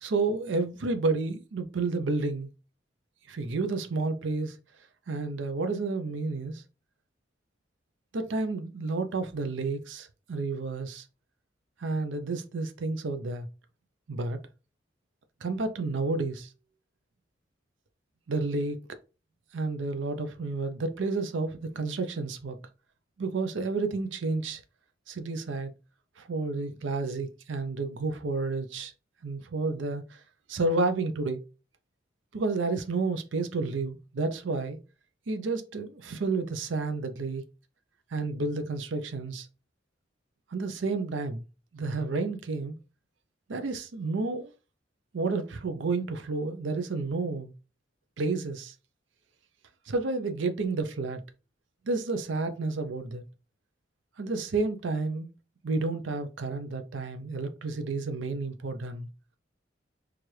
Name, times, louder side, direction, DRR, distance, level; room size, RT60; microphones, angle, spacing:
voice 1, 0.0-2.5 3.3-4.6 5.1-6.6 8.1-11.0 11.8-13.5 14.1-14.4 15.4-16.5 18.3-19.0 19.5-22.6 23.2-24.6 25.1-25.7 26.2-28.9 29.2-30.2 30.5-31.4 32.3-34.8 35.3-37.4 38.1-39.5 40.5-41.4 41.7-42.7 43.5-44.5 45.1-47.5 48.2-48.7 49.9-51.2 51.9-53.2 54.2-55.3 55.6-59.1, right 3 dB, 85° right, 0.6 m, -30 dB
4.5 x 2.4 x 3.1 m
head